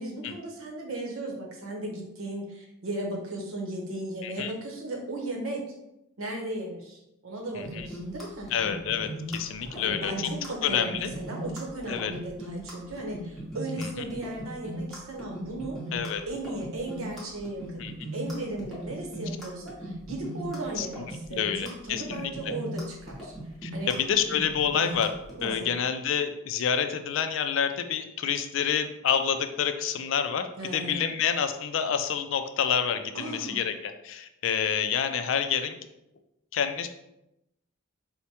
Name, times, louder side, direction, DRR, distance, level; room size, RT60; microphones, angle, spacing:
voice 1, 0.0-5.6 6.2-8.5 9.7-15.8 16.3-23.3 23.7-23.9 25.4-25.7 30.6-31.1 33.1-33.6, right 2 dB, 80° right, 0 dB, 0.8 m, -36 dB
voice 2, 7.5-7.9 8.5-10.3 10.6-11.1 11.9-12.1 13.8-13.9 15.9-16.2 17.8-17.9 20.8-20.9 21.3-22.3 23.6-25.1 25.4-35.8 36.5-36.9, left 8 dB, 65° left, 8 dB, 0.3 m, -28 dB
sound 1, 7.6-25.5, right 1 dB, ahead, 0.8 m, -38 dB
4.5 x 2.1 x 2.8 m, 0.86 s
head